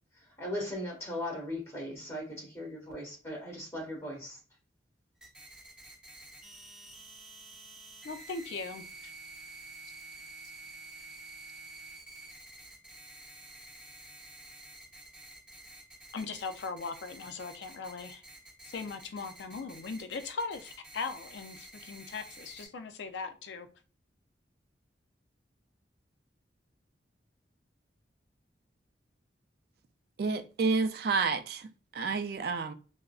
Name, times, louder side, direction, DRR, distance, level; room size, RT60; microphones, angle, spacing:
voice 1, 0.4-4.4, left 1 dB, 15° left, 1.2 m, -38 dB
sound 1, 5.2-22.7, right 2 dB, 5° right, 1.2 m, -50 dB
voice 2, 8.0-9.1 16.1-18.2 18.6-23.7, left 4 dB, 75° left, 0.4 m, -39 dB
voice 3, 30.2-32.7, right 4 dB, 55° right, 0.3 m, -30 dB
3.6 x 2.0 x 2.3 m
head